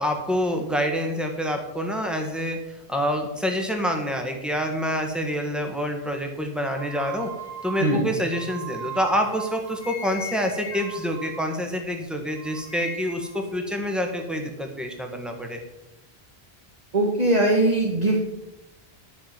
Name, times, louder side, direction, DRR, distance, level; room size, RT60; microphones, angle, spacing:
voice 1, 0.0-2.6 2.9-7.3 7.6-15.6, equal, ahead, 3 dB, 1.6 m, -27 dB
sound 1, 6.8-12.0 12.4-13.4, right 3 dB, 15° left, 2.2 m, -38 dB
voice 2, 16.9-18.2, right 2 dB, 40° right, 0 dB, 1.5 m, -20 dB
11.0 x 6.3 x 7.4 m, 0.95 s
omnidirectional pair, 1.0 m